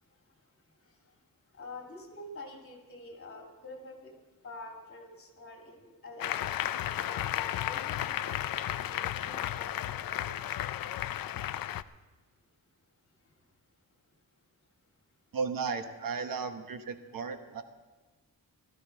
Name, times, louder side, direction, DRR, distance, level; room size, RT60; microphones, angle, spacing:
voice 1, 1.5-4.1 4.4-6.4 7.0-10.5, left 2 dB, 40° left, 1 dB, 2.9 m, -47 dB
Applause, 6.2-11.8, left 12 dB, 75° left, 0.5 m, -33 dB
voice 2, 15.3-17.6, right 5 dB, 70° right, 7 dB, 1.1 m, -35 dB
16.0 x 13.5 x 4.6 m, 1.3 s
wide cardioid pair, 180°, 35 cm